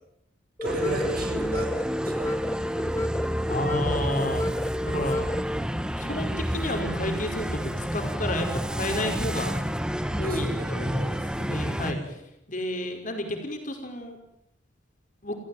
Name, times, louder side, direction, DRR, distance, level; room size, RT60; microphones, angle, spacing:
sound 1, 0.6-5.6, equal, 15° left, 0.9 m, -30 dB
sound 2, 0.6-11.9, equal, 5° right, 1.3 m, -30 dB
voice 1, 0.6-2.3 10.2-11.1 11.9-12.1, right 2 dB, 50° right, 2 dB, 7.5 m, -35 dB
voice 2, 3.5-4.5 4.9-5.3 6.0-9.6 10.1-12.2 12.5-14.2 15.2-15.4, left 1 dB, 45° left, 4 dB, 5.3 m, -31 dB
30.0 x 15.5 x 9.5 m, 0.80 s
head